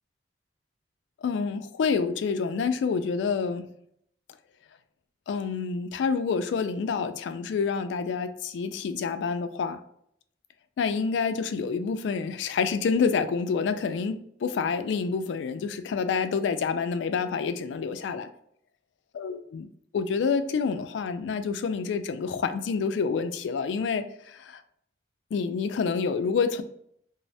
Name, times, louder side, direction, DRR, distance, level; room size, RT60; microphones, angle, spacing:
voice 1, 1.2-3.7 5.3-9.8 10.8-18.3 19.1-19.7 19.9-24.6 25.3-26.6, left 5 dB, 80° left, 10 dB, 0.3 m, -28 dB
3.1 x 2.0 x 2.6 m, 0.69 s
head